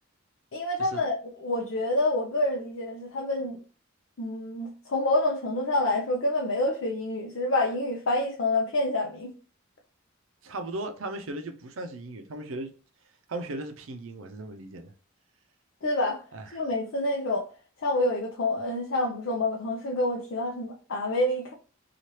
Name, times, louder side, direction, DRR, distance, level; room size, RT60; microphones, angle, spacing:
voice 1, 0.5-3.6 4.2-9.3 15.8-16.2 16.5-17.4 17.8-21.5, left 2 dB, 65° left, 0.6 m, -27 dB
voice 2, 10.4-12.7 13.3-14.9 16.3-16.7, right 2 dB, 75° right, 0.5 m, -37 dB
2.8 x 2.4 x 3.1 m
head